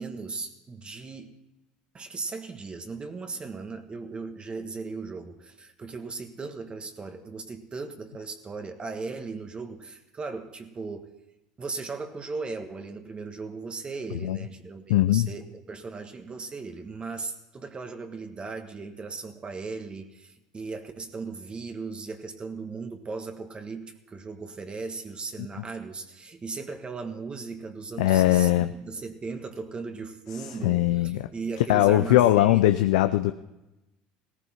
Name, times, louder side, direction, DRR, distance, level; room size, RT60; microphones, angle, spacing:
voice 1, 0.0-1.3 1.9-11.1 11.6-32.6, right 4 dB, 25° right, 6 dB, 1.5 m, -37 dB
voice 2, 14.9-15.3 28.0-28.7 30.5-31.2 31.7-33.3, left 14 dB, 80° left, 10 dB, 0.5 m, -20 dB
18.0 x 14.5 x 4.4 m, 0.97 s
hypercardioid pair, 80°, 4 cm